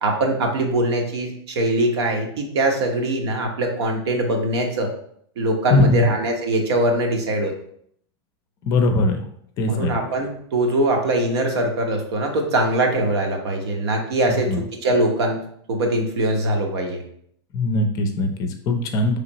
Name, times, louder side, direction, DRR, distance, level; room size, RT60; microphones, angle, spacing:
voice 1, 0.0-4.9 5.4-7.5 9.7-15.4 15.7-17.0, right 1 dB, 80° right, 3 dB, 1.0 m, -22 dB
voice 2, 5.7-6.0 8.7-9.2 9.6-9.9 14.5-14.6 17.5-19.2, left 2 dB, 25° left, 5 dB, 0.5 m, -20 dB
4.9 x 3.3 x 2.9 m, 0.66 s
supercardioid pair, 165°, 14 cm